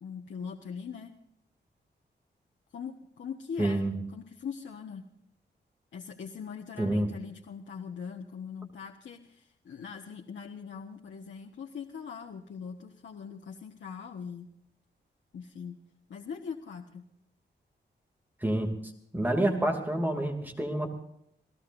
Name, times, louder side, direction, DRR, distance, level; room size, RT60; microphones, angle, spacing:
voice 1, 0.0-1.1 2.7-3.8 4.1-5.0 5.9-14.5 15.3-15.8 16.1-17.1, left 6 dB, 90° left, 1 dB, 1.4 m, -41 dB
voice 2, 3.6-3.9 6.8-7.1 18.4-18.7 19.1-20.9, right 1 dB, 10° right, 2 dB, 2.8 m, -28 dB
29.0 x 18.0 x 2.7 m, 0.73 s
wide cardioid pair, 180°, 19 cm